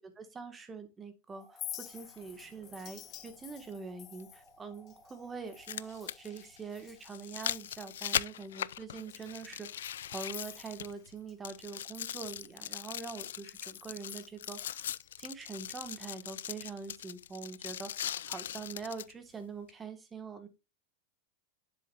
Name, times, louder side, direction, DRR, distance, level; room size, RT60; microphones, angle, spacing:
voice 1, 0.2-14.9 15.2-20.5, right 5 dB, 20° right, 9 dB, 1.7 m, -44 dB
sound 1, 1.3-8.9 9.6-12.6 15.3-15.7, equal, 5° left, 1.9 m, -64 dB
Chink clink, 1.4-7.1 7.3-8.0 8.4-8.5 9.0-11.3 11.6-15.1, left 12 dB, 40° left, 0.8 m, -50 dB
sound 2, 2.2-2.3 4.2-4.3 5.4-11.1 11.4-19.1 19.7-19.8, left 10 dB, 80° left, 0.3 m, -40 dB
7.5 x 7.1 x 2.5 m, 0.26 s
hypercardioid pair, 115°, 0 cm